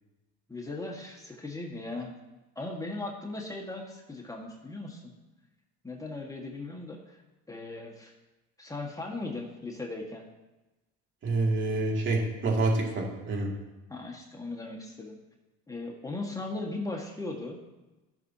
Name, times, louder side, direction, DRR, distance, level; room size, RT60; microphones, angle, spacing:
voice 1, 0.5-2.1 2.5-5.1 5.8-7.2 7.5-8.1 8.6-10.2 13.9-15.2 15.7-17.6, left 2 dB, 10° left, 0 dB, 1.6 m, -38 dB
voice 2, 11.2-13.5, right 2 dB, 40° right, 0 dB, 2.3 m, -27 dB
15.0 x 6.1 x 2.8 m, 1.1 s
supercardioid pair, 95°, 31 cm